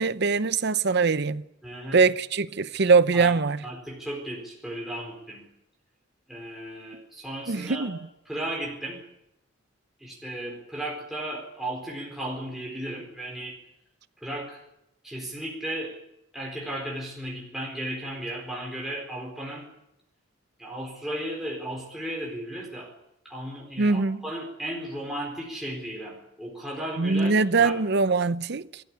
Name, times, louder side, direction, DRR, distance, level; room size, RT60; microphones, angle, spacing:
voice 1, 0.0-1.4 1.9-3.6 7.5-8.0 23.8-24.2 27.0-28.8, right 4 dB, 60° right, 0.8 m, -22 dB
voice 2, 1.6-2.0 3.1-3.3 3.6-5.4 6.3-7.9 8.3-9.0 10.0-13.6 14.2-14.6 15.0-16.0 16.3-19.6 20.6-22.9 23.2-27.3 27.6-27.7, right 1 dB, ahead, 4.3 m, -35 dB
23.0 x 14.0 x 9.7 m
head